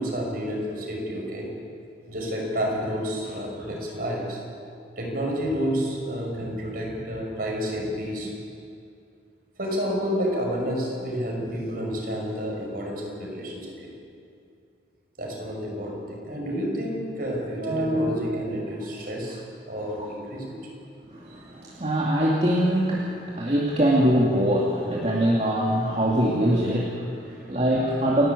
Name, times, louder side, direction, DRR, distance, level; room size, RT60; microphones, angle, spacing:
voice 1, 0.0-1.6 2.1-4.4 5.0-8.3 9.6-13.9 15.2-19.4 19.7-20.7 25.8-25.9 27.3-27.5, equal, 50° right, 0 dB, 5.9 m, -29 dB
voice 2, 21.1-28.3, equal, 35° right, -4 dB, 2.4 m, -23 dB
29.5 x 12.5 x 8.4 m, 2.5 s
head